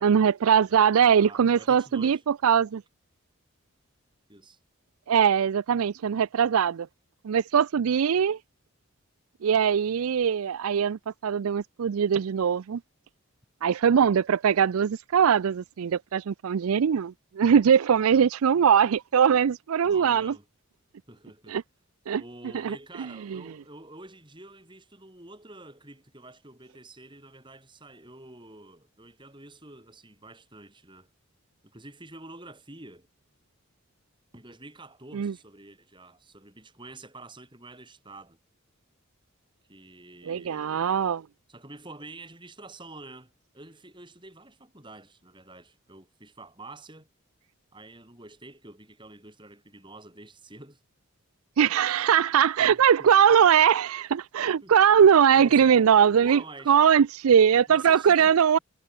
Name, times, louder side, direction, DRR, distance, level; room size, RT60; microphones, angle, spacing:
voice 1, 0.0-2.8 5.1-6.9 7.2-8.4 9.4-12.8 13.6-20.3 21.5-21.6 22.1-22.2 22.6-22.7 23.3-23.4 35.1-35.3 40.3-41.2 51.6-56.4 56.7-58.6, right 8 dB, 80° right, 0.4 m, -21 dB
voice 2, 1.2-2.2 4.3-4.6 19.8-20.5 21.1-21.6 22.1-31.1 31.6-33.1 34.3-38.4 39.7-40.9 41.5-47.1 47.7-50.8 52.6-53.1 54.6-55.0 55.3-55.9 56.2-56.8 57.7-58.6, right 2 dB, 20° right, 6.7 m, -47 dB
head